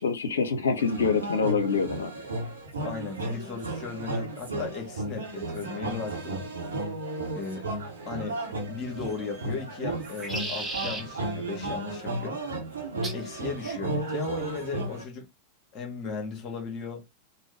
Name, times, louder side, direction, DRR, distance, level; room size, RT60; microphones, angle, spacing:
voice 1, 0.0-2.1, left 5 dB, 70° left, 0.7 m, -25 dB
sound 1, 0.8-15.0, right 2 dB, 70° right, 0.9 m, -34 dB
voice 2, 2.8-6.4 7.3-7.7 8.0-8.4 8.7-12.4 13.1-15.3 15.7-17.0, left 5 dB, 35° left, 1.3 m, -36 dB
sound 2, 9.0-9.5 10.0-11.0 13.0-13.3 14.2-14.6, right 2 dB, 15° right, 1.0 m, -36 dB
3.3 x 2.2 x 3.3 m
figure-of-eight pair, 90°, 0 cm